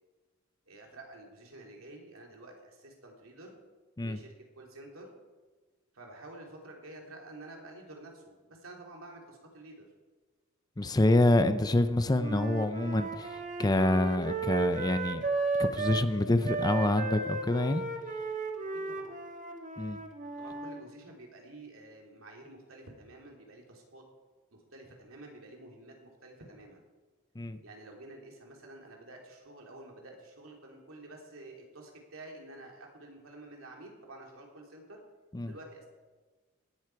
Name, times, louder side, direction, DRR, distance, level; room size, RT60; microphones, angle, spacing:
voice 1, 0.7-3.6 4.0-5.1 5.9-9.9 18.7-19.2 20.4-24.0 24.5-26.8 27.6-35.0 35.4-35.9, right 2 dB, 75° right, 0 dB, 3.2 m, -50 dB
voice 2, 10.8-15.2 15.6-17.8 19.8-20.0 27.4-27.6 35.3-35.5, left 1 dB, 20° left, 11 dB, 0.6 m, -27 dB
Wind instrument woodwind instrument, 12.2-16.1 16.4-20.8, right 3 dB, 40° right, 1.4 m, -34 dB
17.0 x 11.5 x 4.7 m, 1.3 s
head